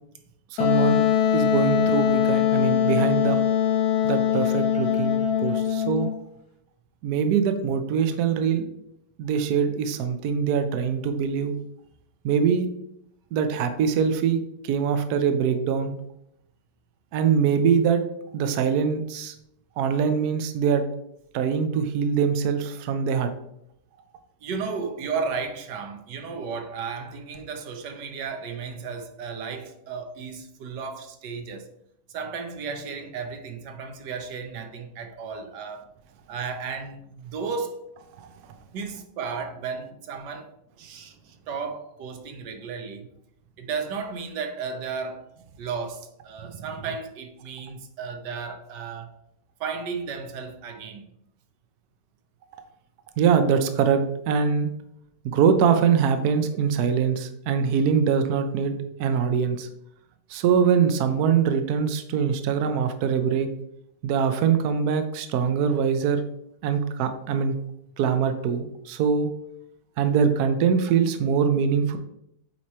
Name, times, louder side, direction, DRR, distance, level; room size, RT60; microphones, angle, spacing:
voice 1, 0.5-1.0 1.3-3.4 4.0-6.1 7.0-8.7 9.2-11.6 12.2-12.7 13.3-15.9 17.1-18.0 18.3-19.3 19.8-20.9 21.3-23.3 38.2-38.3 53.2-54.7 55.2-58.7 59.0-59.7 60.3-63.5 64.0-66.2 66.6-67.5 68.0-69.3 70.0-72.0, right 7 dB, 70° right, 1.1 m, -23 dB
Wind instrument woodwind instrument, 0.6-6.1, left 9 dB, 75° left, 1.2 m, -22 dB
voice 2, 24.4-31.7 32.1-35.9 36.3-37.8 38.7-40.5 40.8-43.1 43.6-45.2 45.6-49.2 49.6-51.1, right 5 dB, 90° right, 1.5 m, -34 dB
8.2 x 3.1 x 4.2 m
omnidirectional pair, 1.8 m